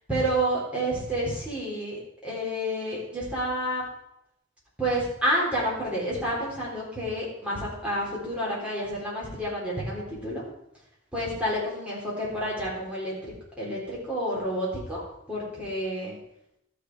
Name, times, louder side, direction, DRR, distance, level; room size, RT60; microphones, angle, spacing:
voice 1, 0.1-3.8 4.8-10.4 11.1-15.0 15.3-16.2, equal, 5° right, -6 dB, 4.0 m, -29 dB
13.0 x 6.9 x 4.8 m, 0.78 s
head